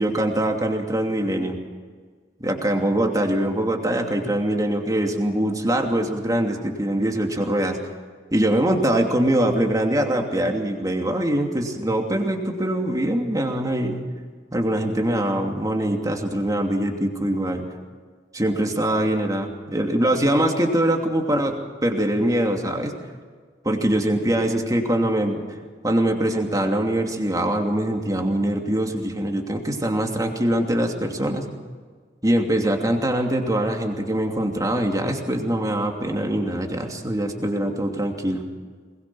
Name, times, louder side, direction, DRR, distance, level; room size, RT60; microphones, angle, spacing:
voice 1, 0.0-1.6 2.4-7.7 8.3-14.1 14.5-17.6 18.3-21.6 21.8-22.9 23.6-25.4 25.8-31.5 32.2-38.4, right 1 dB, 20° right, 2 dB, 2.7 m, -23 dB
22.0 x 20.5 x 6.2 m, 1.5 s
head